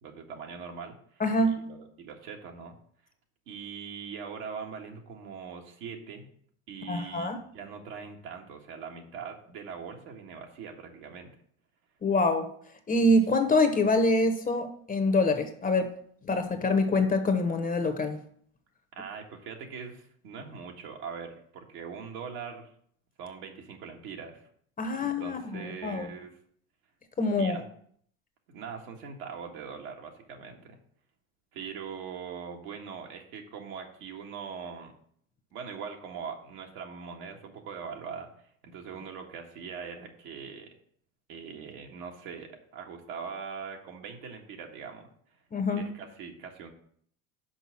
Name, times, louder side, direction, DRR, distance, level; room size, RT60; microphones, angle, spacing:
voice 1, 0.0-1.2 1.5-2.8 3.5-6.3 6.7-11.3 18.9-22.7 23.2-24.5 25.0-26.4 27.4-27.6 28.5-30.8 31.5-34.9 35.5-40.7 41.3-45.1 45.7-46.7, right 6 dB, 60° right, 2 dB, 1.7 m, -42 dB
voice 2, 1.2-1.6 6.9-7.4 12.0-12.5 12.9-15.9 16.2-18.2 24.8-26.1 27.2-27.6 45.5-45.9, left 2 dB, 20° left, 7 dB, 1.0 m, -25 dB
6.1 x 5.0 x 6.4 m, 0.62 s
hypercardioid pair, 80°, 40 cm